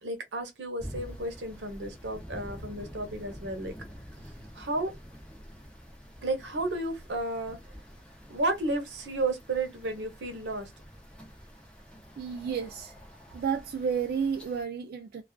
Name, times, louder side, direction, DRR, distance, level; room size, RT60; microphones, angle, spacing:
voice 1, 0.0-3.7 4.5-4.9 6.2-7.6 8.3-10.7, right 2 dB, 85° right, 0.8 m, -32 dB
sound 1, 0.8-14.6, equal, 5° left, 0.6 m, -47 dB
voice 2, 12.2-12.9 13.3-15.2, right 6 dB, 55° right, 0.3 m, -31 dB
2.3 x 2.3 x 2.2 m
head